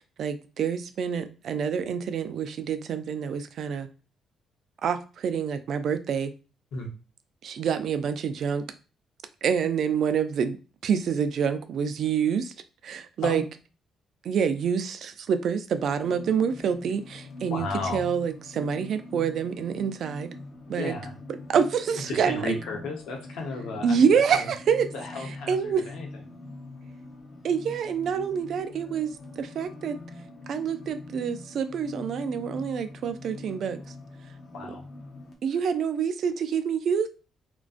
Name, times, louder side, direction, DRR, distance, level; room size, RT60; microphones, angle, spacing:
voice 1, 0.0-3.9 4.8-6.3 7.4-8.6 9.4-10.6 10.8-12.5 12.8-13.4 14.2-17.7 17.9-20.3 20.7-20.9 21.5-22.5 23.8-24.9 25.5-25.8 27.4-29.1 29.4-30.0 30.5-33.8 35.4-37.1, right 7 dB, 65° right, 10 dB, 0.3 m, -27 dB
sound 1, 15.9-35.3, left 2 dB, 45° left, 0.6 m, -43 dB
voice 2, 17.5-18.0 20.8-21.1 22.1-24.5 24.9-26.1 34.5-34.8, left 3 dB, 80° left, 1 dB, 0.8 m, -34 dB
2.4 x 2.2 x 2.4 m, 0.33 s
cardioid pair, 90°, 0 cm